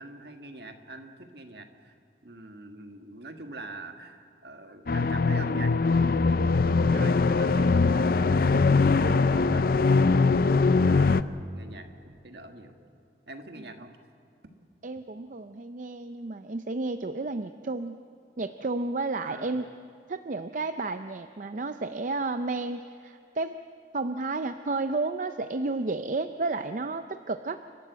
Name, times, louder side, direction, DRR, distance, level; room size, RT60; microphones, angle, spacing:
voice 1, 0.0-1.9 2.2-12.7 13.3-13.9 19.2-19.7, right 2 dB, 60° right, 5 dB, 1.6 m, -43 dB
sound 1, 4.9-11.2, left 4 dB, 50° left, 0.5 m, -22 dB
voice 2, 14.8-18.0 18.4-19.7 20.1-23.6 23.9-27.6, right 3 dB, 45° right, 9 dB, 0.5 m, -32 dB
29.5 x 12.5 x 8.0 m, 2.6 s
head